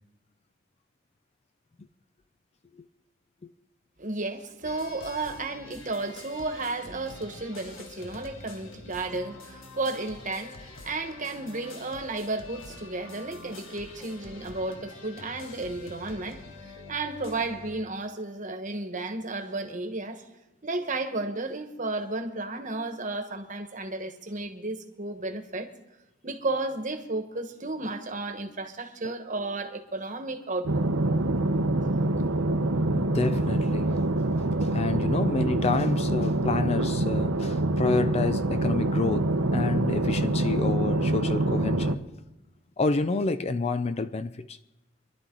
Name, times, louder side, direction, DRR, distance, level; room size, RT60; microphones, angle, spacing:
voice 1, 4.0-20.2 20.6-25.7 26.2-30.8, right 2 dB, 40° right, 1.3 m, -33 dB
sound 1, 4.6-17.8, left 3 dB, 70° left, 1.5 m, -46 dB
sound 2, 30.6-41.9, right 2 dB, 85° right, 0.9 m, -25 dB
voice 2, 32.9-34.0 34.6-42.1 42.8-44.6, left 3 dB, 30° left, 0.4 m, -29 dB
25.5 x 11.5 x 3.9 m
head